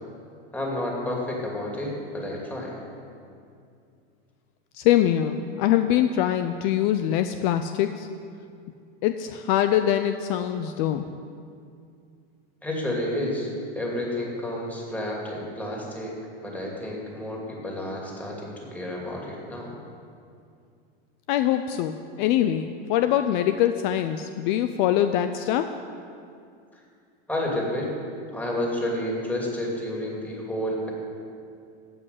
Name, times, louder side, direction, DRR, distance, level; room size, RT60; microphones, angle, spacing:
voice 1, 0.5-2.8 12.6-13.5 13.7-16.1 16.4-19.7 26.7-26.8 27.3-27.9 28.3-30.9, left 1 dB, 5° left, -3 dB, 2.6 m, -30 dB
voice 2, 4.7-8.1 9.0-11.1 21.3-25.8, left 11 dB, 55° left, 9 dB, 0.6 m, -23 dB
15.5 x 5.5 x 9.3 m, 2.4 s
supercardioid pair, 140°, 30 cm